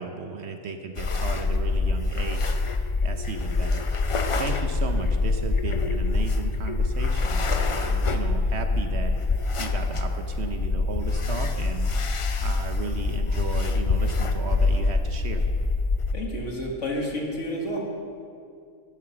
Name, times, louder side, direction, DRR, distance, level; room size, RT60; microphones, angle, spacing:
voice 1, 0.0-2.6 3.0-3.9 4.4-9.1 9.6-11.9 12.4-15.4, right 4 dB, 60° right, 6 dB, 1.0 m, -34 dB
sound 1, 1.0-16.1, left 3 dB, 45° left, 0.4 m, -25 dB
voice 2, 16.1-17.9, equal, 65° left, -1 dB, 2.1 m, -30 dB
11.0 x 9.5 x 5.9 m, 2.4 s
omnidirectional pair, 1.4 m